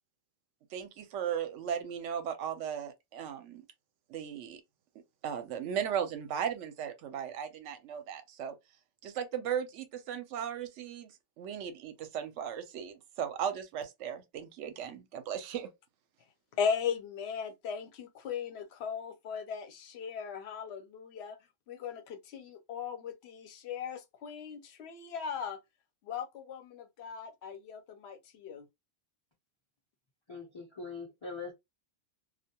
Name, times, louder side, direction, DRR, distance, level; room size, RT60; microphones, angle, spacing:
voice 1, 0.7-3.6 4.1-4.6 5.2-8.6 9.0-15.7, right 8 dB, 80° right, 0.9 m, -37 dB
voice 2, 16.5-21.4 21.7-25.6 26.0-28.7, left 6 dB, 65° left, 0.8 m, -37 dB
voice 3, 30.3-31.5, left 4 dB, 30° left, 0.6 m, -42 dB
2.3 x 2.2 x 2.7 m
omnidirectional pair, 1.2 m